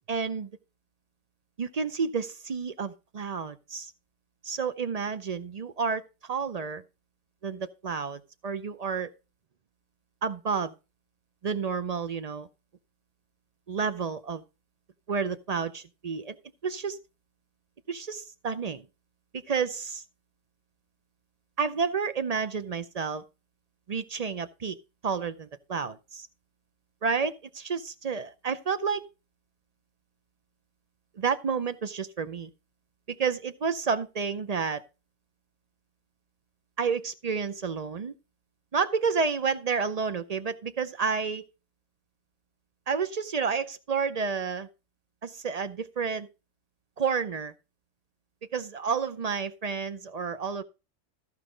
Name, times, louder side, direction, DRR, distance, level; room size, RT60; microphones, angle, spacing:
voice 1, 0.1-0.5 1.6-3.9 4.4-6.0 6.3-6.8 7.4-9.1 10.2-10.7 11.4-12.5 13.7-14.4 15.1-16.4 16.6-17.0 17.9-18.8 19.5-20.0 21.6-23.2 23.9-24.8 25.0-26.3 27.0-29.0 31.2-32.5 33.1-34.8 36.8-38.1 38.7-41.4 42.9-44.7 45.2-46.3 47.0-47.5 48.5-50.6, right 5 dB, 45° right, 0.5 m, -30 dB
14.0 x 4.8 x 5.0 m
omnidirectional pair, 1.3 m